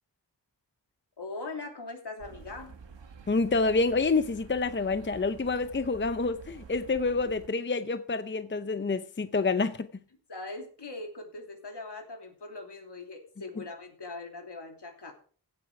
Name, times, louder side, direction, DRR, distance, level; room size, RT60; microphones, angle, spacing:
voice 1, 1.2-2.7 10.3-15.1, left 3 dB, 70° left, 3.0 m, -41 dB
sound 1, 2.2-7.5, right 5 dB, 90° right, 1.5 m, -49 dB
voice 2, 3.3-9.9, left 3 dB, 25° left, 0.7 m, -28 dB
16.0 x 8.4 x 4.8 m
wide cardioid pair, 90°, 42 cm